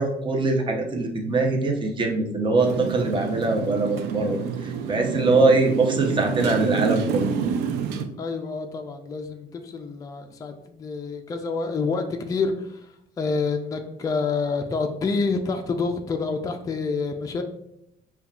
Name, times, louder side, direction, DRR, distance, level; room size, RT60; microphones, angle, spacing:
voice 1, 0.0-7.3, right 3 dB, 30° right, 2 dB, 0.7 m, -22 dB
Motorcycle, 2.6-8.1, right 7 dB, 80° right, 0.4 m, -28 dB
voice 2, 8.2-12.8 13.2-17.4, left 4 dB, 20° left, 4 dB, 0.3 m, -27 dB
5.2 x 2.3 x 2.3 m, 0.79 s
cardioid pair, 110°, 17 cm